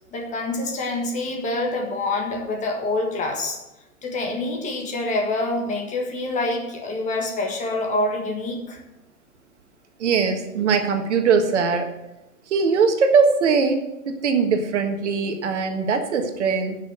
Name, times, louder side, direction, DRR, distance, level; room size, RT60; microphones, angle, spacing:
voice 1, 0.1-3.6 4.0-8.8, left 2 dB, 15° left, 2 dB, 1.6 m, -26 dB
voice 2, 10.0-11.9 12.5-16.8, right 5 dB, 50° right, 5 dB, 1.6 m, -21 dB
10.5 x 6.3 x 7.5 m, 0.94 s
figure-of-eight pair, 115°, 44 cm